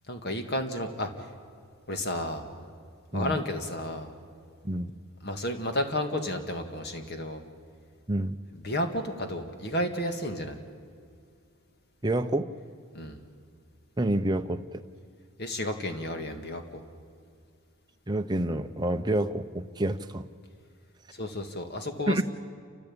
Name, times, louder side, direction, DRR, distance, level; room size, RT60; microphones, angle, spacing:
voice 1, 0.1-1.3 1.9-2.7 3.1-4.1 5.2-7.4 8.5-10.6 12.9-13.2 15.4-16.8 21.1-22.2, left 1 dB, 45° left, 6 dB, 1.9 m, -32 dB
voice 2, 12.0-12.5 14.0-14.6 18.1-20.3 22.1-22.2, right 1 dB, 20° right, 7 dB, 0.7 m, -28 dB
29.0 x 14.5 x 8.7 m, 2.2 s
head